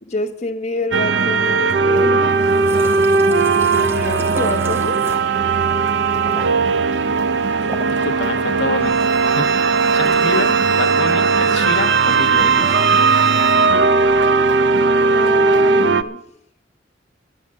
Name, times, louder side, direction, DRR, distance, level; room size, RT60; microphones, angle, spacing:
voice 1, 0.0-2.3 3.7-5.0 15.1-16.2, left 2 dB, 40° left, 2 dB, 1.1 m, -27 dB
sound 1, 0.9-16.0, right 4 dB, 70° right, 0.6 m, -17 dB
sound 2, 2.3-9.4, equal, 15° right, 0.9 m, -36 dB
voice 2, 7.9-9.0 9.3-12.8, left 3 dB, 65° left, 7 dB, 1.1 m, -27 dB
Bowed string instrument, 8.8-13.7, right 10 dB, 55° right, 1.0 m, -26 dB
11.0 x 9.6 x 7.4 m, 0.80 s
head